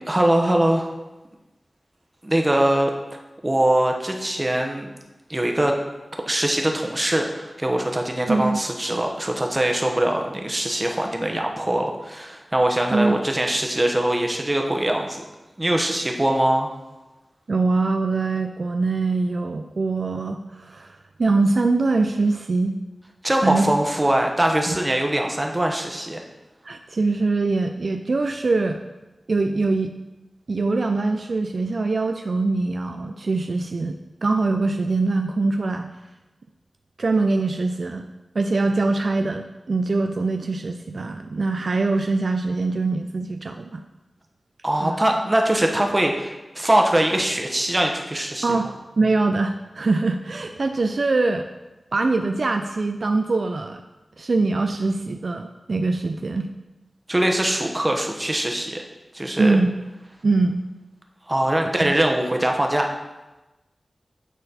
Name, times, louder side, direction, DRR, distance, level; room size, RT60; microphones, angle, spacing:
voice 1, 0.1-0.9 2.2-2.9 3.4-4.8 5.3-5.7 6.3-15.2 15.6-16.7 23.2-26.2 44.6-48.5 57.1-58.8 59.1-59.6 61.3-62.9, right 1 dB, 25° right, 2 dB, 1.0 m, -22 dB
voice 2, 8.3-8.6 12.9-13.1 17.5-22.7 23.4-23.7 26.6-28.8 29.3-29.9 30.5-35.9 37.0-38.1 38.3-43.8 44.8-45.0 48.4-48.7 49.0-51.5 51.9-53.8 54.2-56.5 59.4-59.7 60.2-60.6 61.8-62.0, right 3 dB, 65° right, 5 dB, 0.4 m, -23 dB
9.1 x 4.1 x 4.2 m, 1.1 s
wide cardioid pair, 60°, 0 cm